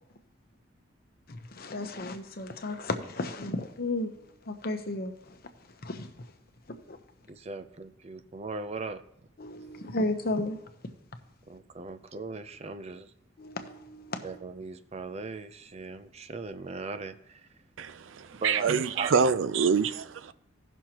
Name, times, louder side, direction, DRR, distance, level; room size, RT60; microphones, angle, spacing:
voice 1, 1.6-4.1 4.5-5.4 5.8-6.1 6.7-7.0 9.4-10.6 13.4-14.4, left 2 dB, 50° left, 0.9 m, -33 dB
voice 2, 7.3-9.0 11.5-13.1 14.2-17.5 18.4-19.1, right 3 dB, 35° right, 0.5 m, -39 dB
voice 3, 17.8-20.3, right 6 dB, 85° right, 0.5 m, -26 dB
16.5 x 6.2 x 3.0 m
head